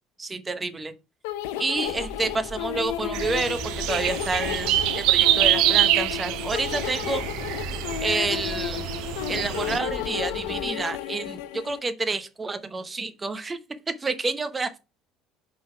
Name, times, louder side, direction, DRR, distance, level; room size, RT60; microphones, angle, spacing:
voice 1, 0.2-0.9 1.6-7.2 8.0-8.9 9.3-13.6 13.9-14.8, right 3 dB, 20° right, 10 dB, 1.0 m, -29 dB
sound 1, 1.2-11.8, left 12 dB, 85° left, 0.6 m, -33 dB
sound 2, 1.9-10.7, equal, ahead, 1.7 m, -40 dB
sound 3, 3.1-9.8, right 14 dB, 70° right, 0.5 m, -25 dB
5.4 x 3.9 x 5.8 m, 0.29 s
supercardioid pair, 90°, 0 cm